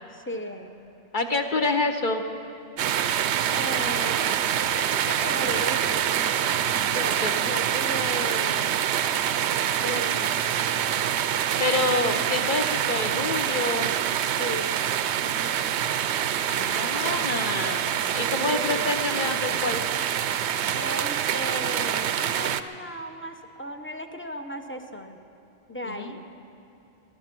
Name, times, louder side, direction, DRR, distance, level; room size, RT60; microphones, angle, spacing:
voice 1, 0.1-0.8 1.6-1.8 3.5-6.5 6.9-8.8 9.8-10.7 14.4-16.0 18.3-18.9 20.7-25.2 25.7-26.2, equal, 15° left, 6 dB, 0.6 m, -36 dB
voice 2, 1.1-2.2 7.2-7.3 11.6-13.9 16.5-19.8 25.9-26.1, left 3 dB, 45° left, 5 dB, 0.9 m, -27 dB
sound 1, 2.8-22.6, right 9 dB, 70° right, 0.8 m, -26 dB
20.0 x 11.0 x 6.0 m, 3.0 s
omnidirectional pair, 1.2 m